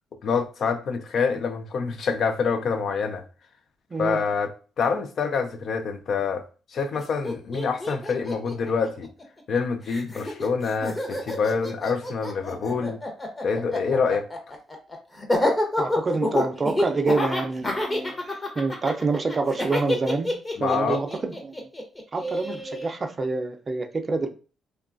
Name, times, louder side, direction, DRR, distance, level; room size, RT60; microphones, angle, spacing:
voice 1, 0.2-3.2 4.0-6.4 6.7-9.1 9.5-13.0 13.4-14.2 20.6-21.0, left 5 dB, 60° left, 0.4 m, -26 dB
voice 2, 3.9-4.2 15.8-20.3 20.6-21.7 22.1-24.3, right 3 dB, 35° right, 0.4 m, -27 dB
Laughter, 6.9-7.0 7.2-9.6 9.9-22.9, left 1 dB, 20° left, 0.8 m, -28 dB
2.9 x 2.3 x 2.4 m
cardioid pair, 90°, 0 cm